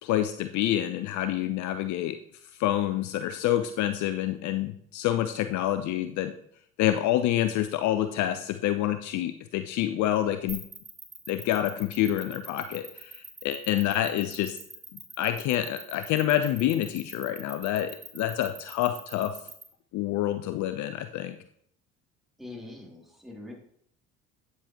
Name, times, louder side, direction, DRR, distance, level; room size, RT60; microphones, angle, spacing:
voice 1, 0.0-2.2 2.6-6.3 6.8-10.6 11.3-14.6 14.9-19.4 19.9-21.4, left 12 dB, 55° left, 10 dB, 0.6 m, -27 dB
sound 1, 10.5-19.6, right 3 dB, 20° right, 2.2 m, -43 dB
voice 2, 22.4-23.5, left 2 dB, ahead, -3 dB, 2.9 m, -43 dB
9.0 x 7.3 x 3.0 m, 0.66 s
hypercardioid pair, 65°, 35 cm